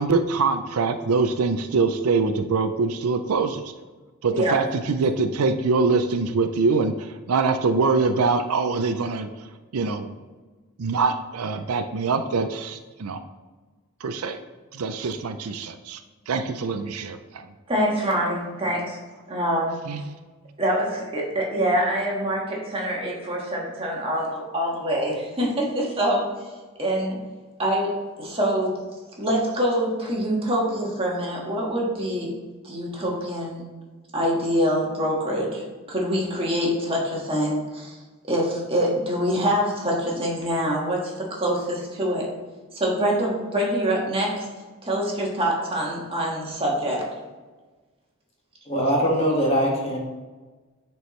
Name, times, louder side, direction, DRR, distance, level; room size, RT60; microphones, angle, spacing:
voice 1, 0.0-3.7 4.2-9.3 9.7-10.1 10.8-13.2 14.0-14.4 14.7-16.0 16.3-17.5 19.9-20.0, right 4 dB, 90° right, 9 dB, 0.5 m, -24 dB
voice 2, 17.7-19.0 19.3-19.7 20.6-26.2 26.8-27.2 27.6-28.8 29.2-32.3 32.6-33.6 34.1-35.6 35.9-42.3 42.7-44.5 44.8-47.0, equal, 25° right, -3 dB, 1.6 m, -25 dB
voice 3, 48.7-50.0, equal, 30° left, -3 dB, 1.8 m, -22 dB
9.6 x 4.5 x 3.2 m, 1.3 s
head